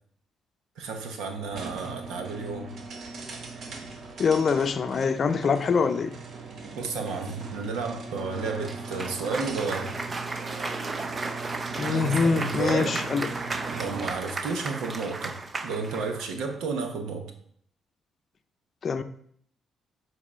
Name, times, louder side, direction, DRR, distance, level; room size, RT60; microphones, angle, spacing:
voice 1, 0.8-2.8 6.7-10.0 11.8-13.0 13.7-17.3, right 4 dB, 90° right, 5 dB, 1.0 m, -32 dB
sound 1, 1.5-14.3, right 4 dB, 60° right, 1.1 m, -39 dB
voice 2, 4.2-6.2 11.8-13.3 18.8-19.0, left 5 dB, 45° left, 9 dB, 0.6 m, -24 dB
Cheering / Applause, 8.6-16.3, right 3 dB, 30° right, 0.6 m, -34 dB
7.3 x 4.1 x 4.3 m, 0.63 s
cardioid pair, 90°, 0 cm